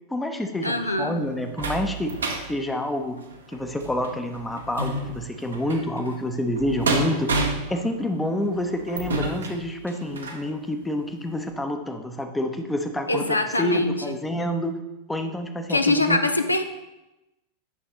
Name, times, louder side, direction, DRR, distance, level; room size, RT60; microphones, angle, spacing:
voice 1, 0.1-2.1 2.5-3.2 3.5-7.3 7.7-14.8 15.1-16.2, left 1 dB, 5° left, 5 dB, 0.7 m, -28 dB
voice 2, 0.6-1.2 13.1-14.2 15.7-16.6, left 2 dB, 85° left, 7 dB, 0.5 m, -23 dB
sound 1, 0.6-10.5 11.0-11.1 11.5-11.6, right 2 dB, 70° right, 0.9 m, -31 dB
9.4 x 6.2 x 3.0 m, 0.96 s
figure-of-eight pair, 90°, 0 cm